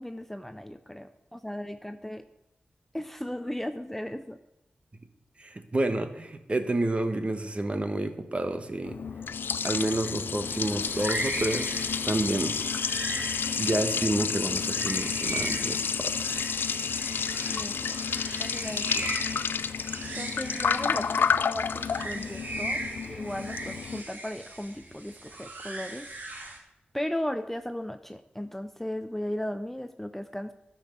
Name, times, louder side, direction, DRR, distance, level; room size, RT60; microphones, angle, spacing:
voice 1, 0.0-2.2 2.9-4.4 10.0-10.1 13.4-13.8 17.5-18.0 18.4-19.4 20.1-22.8 23.1-26.1 26.9-30.5, left 1 dB, 5° left, 9 dB, 0.6 m, -36 dB
voice 2, 5.4-9.0 9.6-12.6 13.6-16.5, right 2 dB, 35° right, 8 dB, 1.2 m, -30 dB
Liquid, 8.9-24.0, left 6 dB, 80° left, 0.4 m, -30 dB
sound 1, 10.8-26.6, right 1 dB, 65° right, 2.6 m, -38 dB
11.5 x 5.9 x 6.9 m, 0.90 s
cardioid pair, 65°, 4 cm